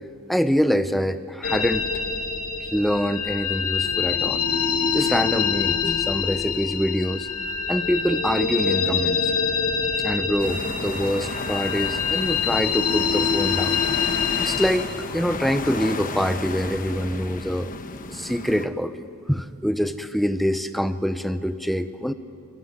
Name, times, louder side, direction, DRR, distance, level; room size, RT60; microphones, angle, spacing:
voice 1, 0.3-1.9 2.6-4.4 4.9-7.3 7.7-9.2 10.0-13.8 14.4-17.7 18.1-22.1, equal, ahead, 10 dB, 0.8 m, -25 dB
sound 1, 1.4-14.7, left 6 dB, 80° left, 2.6 m, -25 dB
sound 2, 10.4-18.7, left 3 dB, 40° left, 1.1 m, -34 dB
sound 3, 10.5-17.2, equal, 55° right, 5.2 m, -41 dB
25.5 x 23.5 x 9.8 m, 2.5 s
head